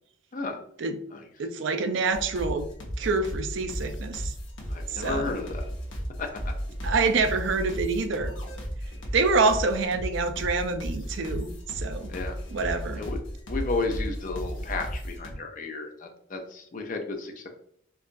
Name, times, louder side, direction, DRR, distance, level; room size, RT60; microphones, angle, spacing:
voice 1, 1.4-2.7 3.0-4.3 4.9-5.4 6.8-8.3 9.1-11.5 11.7-12.1 12.5-13.0, right 4 dB, 70° right, 8 dB, 0.4 m, -26 dB
sound 1, 2.1-15.3, equal, 65° left, 0.9 m, -34 dB
voice 2, 4.7-5.6 6.2-6.3 12.1-12.4 12.9-13.2 13.5-17.5, left 3 dB, 40° left, 4 dB, 0.5 m, -33 dB
4.6 x 2.4 x 2.5 m, 0.68 s
head